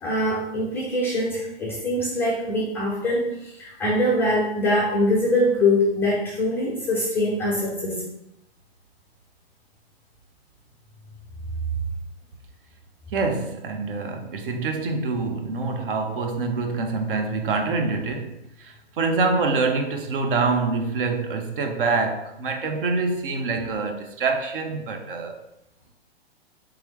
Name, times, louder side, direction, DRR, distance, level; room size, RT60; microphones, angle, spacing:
voice 1, 0.0-8.0, left 1 dB, 10° left, 0.3 m, -23 dB
voice 2, 13.1-25.4, right 4 dB, 60° right, 0.7 m, -26 dB
3.6 x 3.1 x 3.0 m
hypercardioid pair, 120°, 31 cm